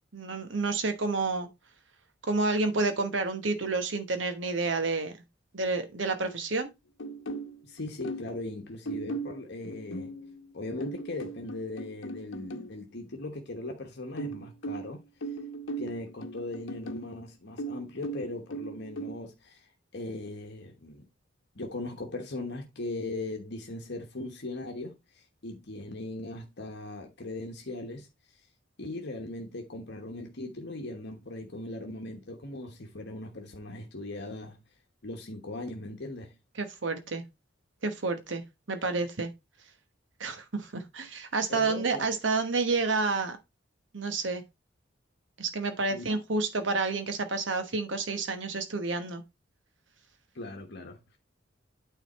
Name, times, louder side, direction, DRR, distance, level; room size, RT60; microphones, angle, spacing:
voice 1, 0.1-1.5 2.2-5.1 5.5-6.7 36.6-37.2 37.8-39.3 40.2-43.4 43.9-44.4 45.4-49.2, right 3 dB, 70° right, 1.2 m, -29 dB
sound 1, 7.0-8.4 8.8-12.7 14.2-17.1 17.6-19.1, right 2 dB, 90° left, 0.9 m, -38 dB
voice 2, 7.6-10.1 10.5-15.3 15.8-21.1 21.5-28.4 28.8-34.6 35.0-36.4 41.5-42.1 45.9-46.2 50.3-51.2, left 2 dB, 60° left, 1.2 m, -39 dB
9.2 x 4.0 x 4.1 m
head